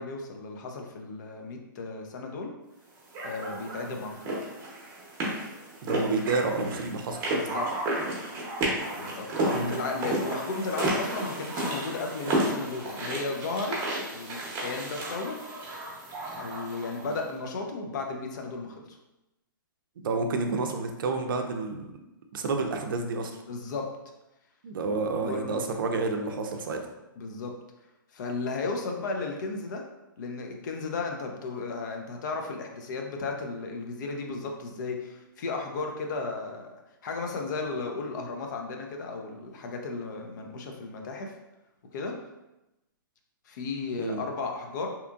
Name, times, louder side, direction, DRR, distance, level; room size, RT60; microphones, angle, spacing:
voice 1, 0.0-2.5 3.2-4.2 7.3-7.7 9.0-13.8 14.1-15.4 16.4-19.0 23.5-23.9 25.2-25.6 27.2-27.5 28.1-29.8 30.2-36.7 37.0-41.3 41.9-42.2 43.5-44.9, left 3 dB, 55° left, 3 dB, 0.5 m, -34 dB
sound 1, 3.1-17.2, right 1 dB, 25° right, 0.8 m, -32 dB
voice 2, 5.8-7.3 9.5-9.7 20.0-21.9 22.3-23.3 24.6-26.9 44.0-44.2, right 3 dB, 70° right, 4 dB, 0.4 m, -29 dB
2.8 x 2.4 x 2.4 m, 0.96 s
hypercardioid pair, 135°, 12 cm